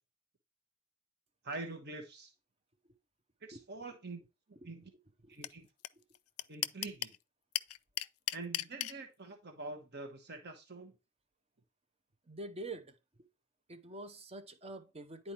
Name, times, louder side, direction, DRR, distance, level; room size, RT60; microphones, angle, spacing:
voice 1, 1.4-2.3 3.4-4.2 4.6-4.8 5.3-5.7 6.5-7.1 8.3-10.9, right 3 dB, 50° right, 1.2 m, -45 dB
sound 1, 5.4-5.5 5.8-5.9 6.1-7.2 7.5-8.9, left 14 dB, 75° left, 0.4 m, -34 dB
voice 2, 12.3-13.3 13.7-15.3, right 1 dB, 30° right, 0.7 m, -46 dB
10.0 x 4.4 x 2.9 m
head